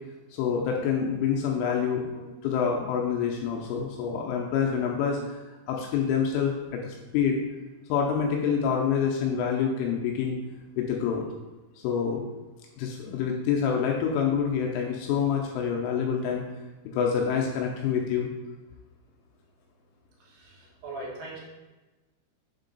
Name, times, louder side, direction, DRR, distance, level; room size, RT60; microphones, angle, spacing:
voice 1, 0.3-5.2 5.7-7.4 7.9-10.4 10.8-11.2 11.8-12.2 12.8-16.4 16.9-18.3, left 7 dB, 85° left, 0 dB, 3.1 m, -27 dB
voice 2, 20.2-21.4, right 2 dB, 65° right, -4 dB, 2.9 m, -40 dB
7.4 x 3.7 x 3.9 m, 1.2 s
omnidirectional pair, 5.6 m